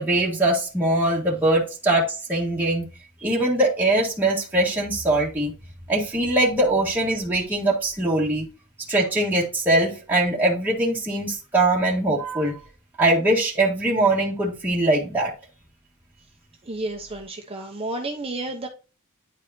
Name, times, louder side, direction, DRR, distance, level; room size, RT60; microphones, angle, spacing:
voice 1, 0.0-2.8 3.2-5.5 5.9-8.4 8.9-12.6 13.0-15.3, right 1 dB, 10° right, 1.6 m, -22 dB
voice 2, 16.6-18.7, right 2 dB, 25° right, 0.9 m, -31 dB
9.9 x 4.8 x 2.8 m
head